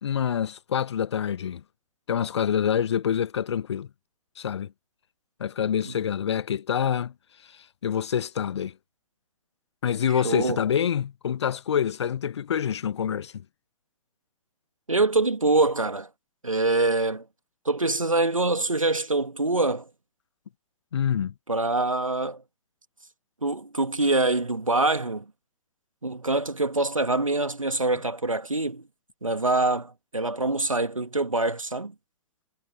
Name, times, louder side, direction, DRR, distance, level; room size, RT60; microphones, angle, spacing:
voice 1, 0.0-1.6 2.1-3.9 4.4-4.7 5.4-7.1 7.8-8.7 9.8-13.3 20.9-21.3, left 8 dB, 60° left, 1.3 m, -26 dB
voice 2, 10.1-10.6 14.9-16.1 16.4-17.3 17.7-19.9 21.5-22.4 23.4-25.3 26.0-28.8 29.2-31.9, right 2 dB, 80° right, 2.2 m, -25 dB
figure-of-eight pair, 115°, 17 cm